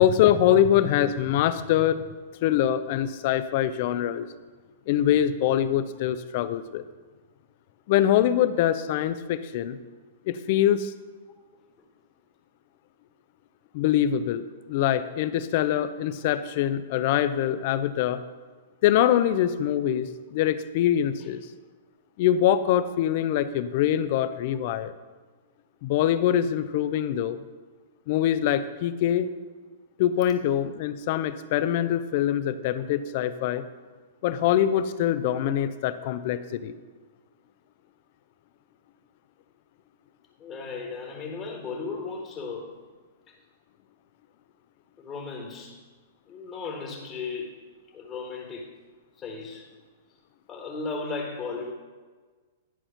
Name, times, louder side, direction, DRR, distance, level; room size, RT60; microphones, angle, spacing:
voice 1, 0.0-2.0 2.4-4.3 4.9-6.8 7.9-9.8 10.3-10.9 13.7-18.2 18.8-21.5 22.2-24.9 25.8-27.4 28.1-29.4 30.0-33.6 34.2-36.8, left 11 dB, 55° left, 13 dB, 0.5 m, -24 dB
voice 2, 40.4-42.8 43.3-43.4 45.0-45.8 46.3-47.5 47.9-48.7 49.2-49.7 50.5-51.7, left 4 dB, 30° left, 1 dB, 1.4 m, -35 dB
11.5 x 4.3 x 5.7 m, 1.4 s
hypercardioid pair, 120°, 0 cm